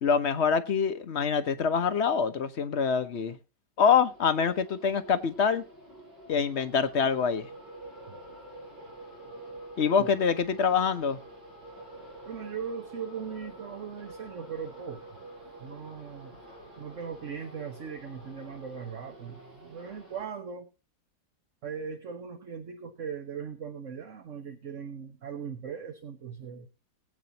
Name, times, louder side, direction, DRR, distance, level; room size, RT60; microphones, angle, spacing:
voice 1, 0.0-3.4 3.8-5.6 6.3-7.5 9.8-11.2, left 6 dB, 45° left, 0.9 m, -25 dB
sound 1, 4.0-20.2, right 1 dB, 65° right, 7.8 m, -48 dB
voice 2, 12.2-15.0 15.6-16.4 16.8-20.7 21.6-26.7, right 6 dB, 45° right, 1.4 m, -39 dB
21.0 x 8.7 x 2.8 m
omnidirectional pair, 2.0 m